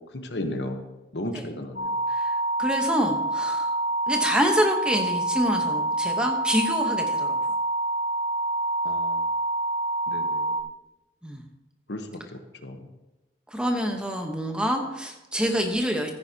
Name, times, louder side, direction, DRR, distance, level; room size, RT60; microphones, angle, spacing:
voice 1, 0.1-0.8 1.1-1.9 8.8-9.2 10.1-10.6 11.9-12.9, left 1 dB, 75° left, 6 dB, 1.1 m, -34 dB
sound 1, 1.8-10.6, right 2 dB, 55° left, 0.8 m, -27 dB
voice 2, 2.1-3.7 4.1-7.4 11.2-11.4 13.5-16.1, equal, 5° right, 2 dB, 1.0 m, -26 dB
14.5 x 9.7 x 2.9 m, 1.0 s
head